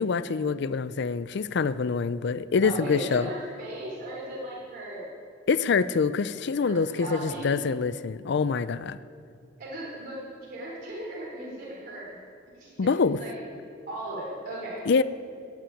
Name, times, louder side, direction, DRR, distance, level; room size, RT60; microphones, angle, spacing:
voice 1, 0.0-3.3 5.5-9.0 12.8-13.2 14.9-15.0, left 5 dB, 60° left, 15 dB, 0.4 m, -25 dB
voice 2, 2.6-5.1 6.6-7.6 9.6-12.2 12.5-12.9 13.2-13.3 13.9-14.8, right 1 dB, 50° right, -6 dB, 4.0 m, -37 dB
18.0 x 6.1 x 9.9 m, 2.3 s
head